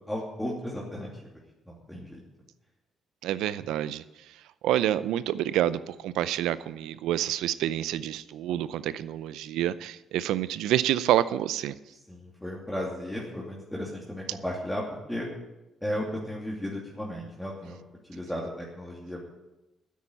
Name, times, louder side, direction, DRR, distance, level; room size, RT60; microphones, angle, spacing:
voice 1, 0.1-1.3 1.7-2.2 11.9-14.8 15.1-15.3 15.8-17.8 18.0-19.2, equal, 5° left, -3 dB, 2.7 m, -35 dB
voice 2, 3.2-4.0 4.6-11.7, right 12 dB, 90° right, 16 dB, 0.5 m, -28 dB
9.5 x 8.5 x 8.9 m, 0.99 s
cardioid pair, 90°, 0 cm